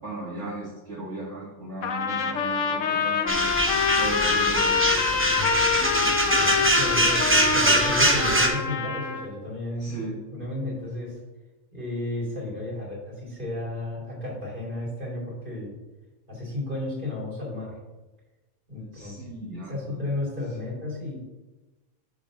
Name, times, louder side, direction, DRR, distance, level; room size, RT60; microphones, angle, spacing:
voice 1, 0.0-4.9 9.8-10.1 18.9-20.0, right 2 dB, 55° right, -10 dB, 2.7 m, -37 dB
Trumpet, 1.8-9.3, left 6 dB, 70° left, 1.0 m, -26 dB
sound 1, 3.3-8.5, right 1 dB, 15° right, 0.6 m, -23 dB
voice 2, 6.3-11.2 11.7-15.8 16.3-17.8 18.7-19.3 19.7-21.2, left 2 dB, 35° right, -5 dB, 3.1 m, -33 dB
7.1 x 4.2 x 6.2 m, 1.1 s
omnidirectional pair, 1.5 m